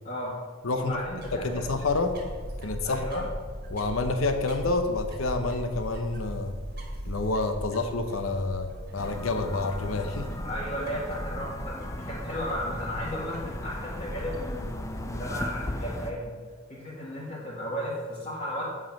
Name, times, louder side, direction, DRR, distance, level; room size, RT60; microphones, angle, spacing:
voice 1, 0.0-0.4 0.7-1.7 2.8-3.2 10.4-16.4 16.7-18.6, equal, 40° left, -9 dB, 1.8 m, -34 dB
voice 2, 0.6-1.0 1.3-2.1 2.6-3.3 3.7-6.5 7.1-10.3, left 3 dB, 85° left, 7 dB, 0.9 m, -28 dB
sound 1, 0.7-15.9, equal, 45° right, 1.6 m, -39 dB
sound 2, 9.0-16.1, left 1 dB, 15° left, 0.5 m, -38 dB
8.9 x 4.9 x 5.9 m, 1.5 s
head